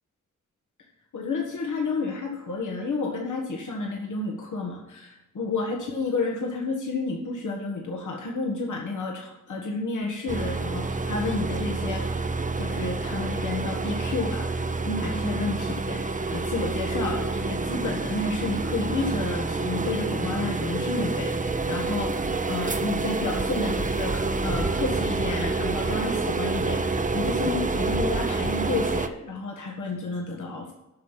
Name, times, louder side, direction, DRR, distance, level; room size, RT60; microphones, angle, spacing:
voice 1, 1.1-12.3 12.6-30.7, left 3 dB, 70° left, 0 dB, 1.5 m, -31 dB
sound 1, 10.3-29.1, right 3 dB, 25° right, 0.7 m, -28 dB
8.6 x 5.8 x 7.3 m, 0.97 s
cardioid pair, 60°, 31 cm